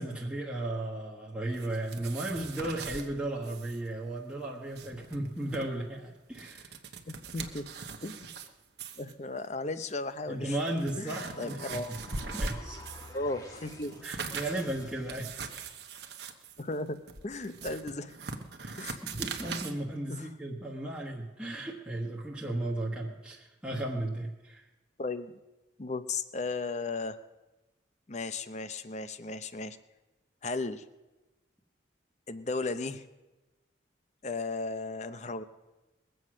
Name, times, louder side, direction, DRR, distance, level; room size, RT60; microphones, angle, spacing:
voice 1, 0.0-6.7 10.3-11.8 12.3-12.8 14.0-15.7 18.6-24.6, right 1 dB, 5° right, -4 dB, 1.3 m, -35 dB
sound 1, 1.5-3.1 3.4-3.8 4.0-4.1 4.6-5.6 6.2-8.5 8.8-9.1 9.9-10.0 10.5-13.2 13.5-19.7, right 4 dB, 60° right, 1.1 m, -41 dB
voice 2, 7.1-7.7 8.0-8.3 9.0-10.6 11.0-11.9 13.1-13.9 16.6-18.2 18.8-19.0 20.1-20.3 25.0-25.3 25.8-27.2 28.1-29.8 30.4-30.8 32.3-33.0 34.2-35.4, left 3 dB, 35° left, 12 dB, 0.7 m, -35 dB
sound 2, 11.1-15.6, left 1 dB, 20° left, 1.5 m, -50 dB
21.0 x 7.9 x 6.3 m, 1.1 s
head